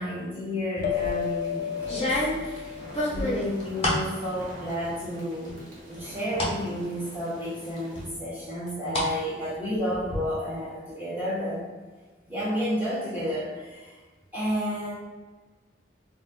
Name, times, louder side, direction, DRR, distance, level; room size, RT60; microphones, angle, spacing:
voice 1, 0.0-2.2 2.5-2.7 3.0-11.6 12.3-13.9 14.3-14.9, equal, 10° right, -9 dB, 0.8 m, -31 dB
sound 1, 0.8-3.8, left 10 dB, 50° left, 0.4 m, -33 dB
sound 2, 0.8-1.2 1.8-4.1 4.5-5.1 5.5-6.6 7.0-7.1 8.0-9.1 9.4-10.2, left 1 dB, 30° left, 0.9 m, -29 dB
sound 3, 0.9-8.1, equal, 45° right, 0.9 m, -46 dB
3.9 x 2.6 x 2.2 m, 1.3 s
head